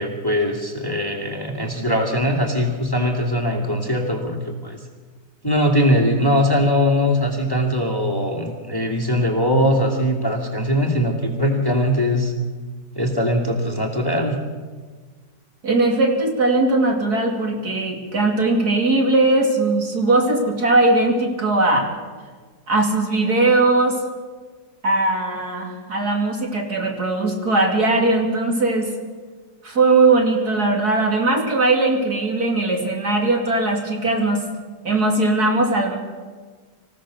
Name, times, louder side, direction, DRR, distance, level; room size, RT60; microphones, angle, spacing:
voice 1, 0.0-4.8 5.4-12.3 13.0-14.4, equal, 10° left, 1 dB, 2.3 m, -21 dB
voice 2, 15.6-21.9 22.7-24.0 24.8-28.9 29.6-34.4 34.8-35.9, right 2 dB, 60° right, 1 dB, 3.3 m, -19 dB
26.0 x 15.5 x 6.4 m, 1.5 s
omnidirectional pair, 1.9 m